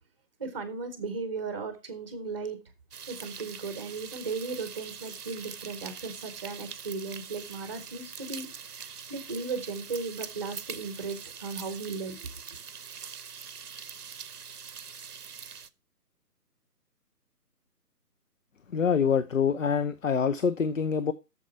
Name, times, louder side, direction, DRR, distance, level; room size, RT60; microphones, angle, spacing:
voice 1, 0.4-2.6 3.1-12.3, right 4 dB, 20° right, 0.8 m, -36 dB
sound 1, 2.9-15.7, right 6 dB, 70° right, 0.9 m, -43 dB
voice 2, 18.7-21.1, left 6 dB, 55° left, 0.8 m, -25 dB
8.4 x 6.9 x 4.4 m
figure-of-eight pair, 150°, 48 cm